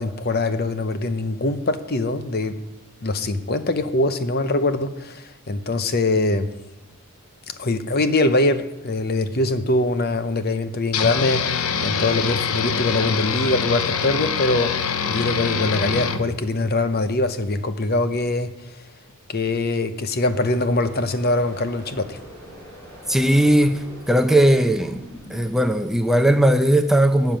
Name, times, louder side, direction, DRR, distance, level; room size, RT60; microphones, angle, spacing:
voice 1, 0.0-2.6 3.0-6.5 7.6-14.7 15.1-18.5 19.3-22.2, left 2 dB, 45° left, 10 dB, 0.7 m, -23 dB
sound 1, 10.9-16.2, left 6 dB, 80° left, 0.8 m, -24 dB
sound 2, 20.3-25.6, equal, 15° left, 5.4 m, -42 dB
voice 2, 23.1-25.0 25.3-27.4, right 1 dB, ahead, 6 dB, 0.6 m, -18 dB
12.0 x 5.9 x 8.9 m, 0.99 s
head